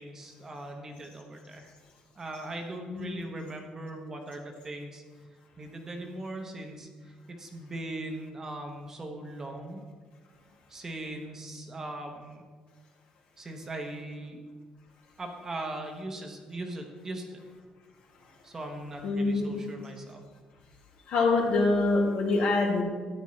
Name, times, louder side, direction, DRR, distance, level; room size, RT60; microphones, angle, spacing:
voice 1, 0.0-1.7 2.1-5.0 5.6-9.8 10.7-12.4 13.4-14.4 15.2-17.4 18.4-20.2, right 1 dB, 20° right, 3 dB, 1.0 m, -39 dB
voice 2, 19.0-19.6 21.1-22.8, left 3 dB, 65° left, -1 dB, 2.4 m, -25 dB
13.0 x 9.9 x 3.2 m, 1.5 s
cardioid pair, 170°, 2 cm